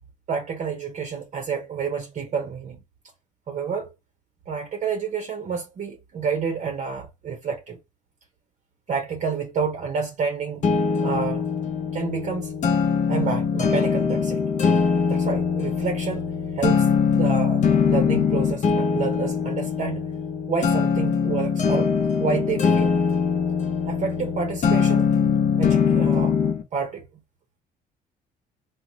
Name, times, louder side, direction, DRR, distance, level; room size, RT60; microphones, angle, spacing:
voice 1, 0.3-2.8 3.5-3.9 4.5-7.8 8.9-10.6 11.0-11.5 11.9-12.5 13.1-14.4 15.1-16.2 16.6-16.9 17.1-20.0 20.5-21.9 22.2-23.0 23.8-25.1 25.6-26.4 26.7-27.1, right 6 dB, 45° right, 0.7 m, -29 dB
sound 1, 10.6-26.6, left 6 dB, 45° left, 0.7 m, -22 dB
3.9 x 2.1 x 3.0 m
cardioid pair, 110°, 17 cm